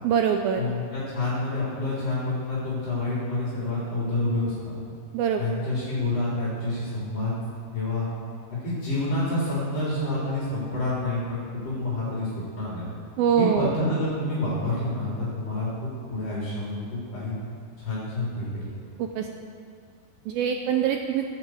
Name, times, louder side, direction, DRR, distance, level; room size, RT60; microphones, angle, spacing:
voice 1, 0.0-0.6 5.1-5.4 13.2-13.7 19.0-19.3 20.3-21.3, right 8 dB, 85° right, 4 dB, 2.1 m, -23 dB
voice 2, 0.6-4.8 5.4-7.3 7.7-8.1 8.5-12.8 13.4-17.3 17.8-18.7, left 2 dB, 35° left, -8 dB, 4.5 m, -28 dB
17.0 x 8.8 x 7.9 m, 2.3 s
omnidirectional pair, 5.0 m